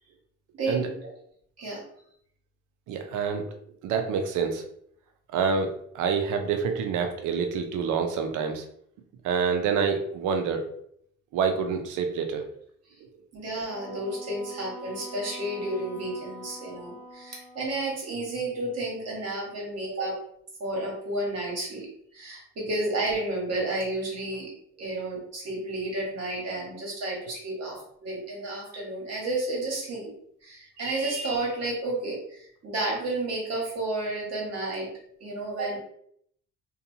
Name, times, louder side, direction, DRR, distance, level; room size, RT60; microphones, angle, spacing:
voice 1, 2.9-3.5 3.8-4.6 5.3-8.6 9.2-10.7 11.3-12.4, right 6 dB, 80° right, 5 dB, 0.5 m, -27 dB
voice 2, 13.3-20.2 20.6-24.5 24.8-30.1 30.4-34.9 35.2-35.8, right 2 dB, 55° right, -2 dB, 1.3 m, -31 dB
Wind instrument woodwind instrument, 13.6-18.1, equal, 5° left, 0.6 m, -45 dB
2.7 x 2.2 x 2.7 m, 0.68 s
cardioid pair, 90°, 30 cm